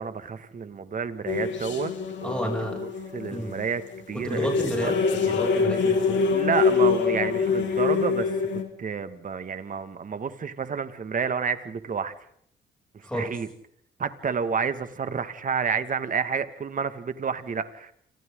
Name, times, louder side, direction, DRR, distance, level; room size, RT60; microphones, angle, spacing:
voice 1, 0.0-1.9 2.2-4.5 4.8-4.9 5.2-5.3 6.3-8.4 8.8-12.1 12.9-13.5 14.0-17.9, right 6 dB, 40° right, 11 dB, 2.1 m, -30 dB
sound 1, 1.3-8.6, left 5 dB, 65° left, 4.3 m, -25 dB
voice 2, 2.2-2.8 3.3-3.6 4.2-4.9 5.2-6.3 13.0-13.3, equal, 5° left, 0 dB, 7.6 m, -31 dB
30.0 x 26.5 x 3.9 m, 0.69 s
cardioid pair, 90°, 20 cm